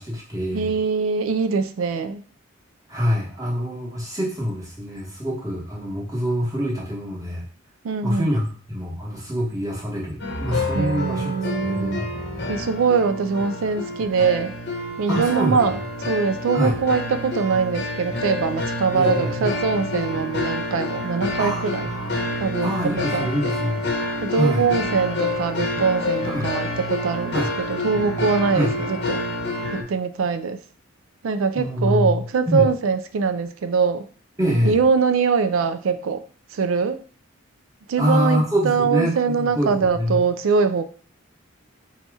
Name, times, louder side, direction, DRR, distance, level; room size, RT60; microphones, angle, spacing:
voice 1, 0.0-0.7 2.9-7.4 8.0-12.1 15.1-15.8 16.5-16.7 18.9-19.5 21.4-22.3 22.6-23.9 24.3-24.6 26.2-26.5 27.3-27.5 28.5-28.7 31.5-32.7 34.4-34.8 38.0-40.2, equal, 15° right, -4 dB, 1.1 m, -25 dB
voice 2, 0.5-2.2 7.8-8.3 10.7-12.0 12.5-14.5 15.0-15.8 16.1-21.9 22.4-22.7 23.1-23.6 24.2-27.4 27.7-29.2 29.7-30.6 31.2-34.1 34.6-36.2 36.5-37.0 37.9-40.9, right 5 dB, 80° right, 11 dB, 0.4 m, -22 dB
sound 1, 10.2-29.8, left 2 dB, 55° left, 0.8 m, -28 dB
4.1 x 2.8 x 3.5 m, 0.43 s
head